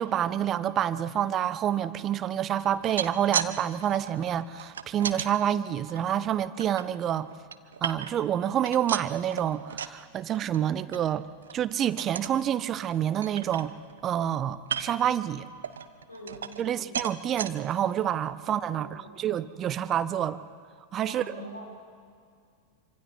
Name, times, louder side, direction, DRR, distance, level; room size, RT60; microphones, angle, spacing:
voice 1, 0.0-7.3 7.8-11.3 11.5-13.7 14.0-15.5 16.6-20.4 20.9-21.3, right 10 dB, 30° right, 15 dB, 0.7 m, -28 dB
sound 1, 2.7-3.5 3.8-5.3 5.8-6.8 7.3-8.3 8.6-10.0 10.3-10.6 10.9-11.0 11.4-11.6 12.0-12.4 12.8-12.9 13.2-14.0 14.6-15.1 15.6-16.7 16.9-17.5 18.1-18.2 18.5-18.6, right 7 dB, 65° right, 0.8 m, -34 dB
voice 2, 16.1-16.9 18.3-18.5 18.7-19.2 21.0-21.9, equal, 85° left, -2 dB, 5.6 m, -44 dB
26.5 x 25.5 x 4.1 m, 2.2 s
figure-of-eight pair, 90°, 0 cm